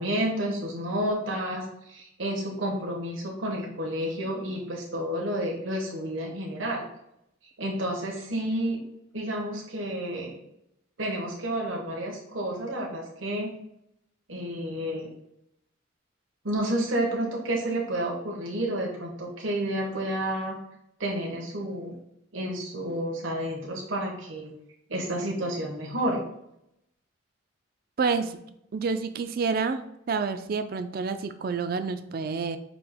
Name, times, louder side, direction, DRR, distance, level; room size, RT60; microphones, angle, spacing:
voice 1, 0.0-6.8 7.6-8.8 9.1-10.3 11.0-13.5 14.3-15.1 16.4-20.6 21.0-21.9 22.3-24.5 24.9-26.2, right 1 dB, 75° right, -2 dB, 1.0 m, -30 dB
voice 2, 28.0-28.4 28.7-29.8 30.1-32.6, right 5 dB, 45° right, 10 dB, 0.3 m, -28 dB
5.2 x 2.8 x 3.5 m, 0.78 s
head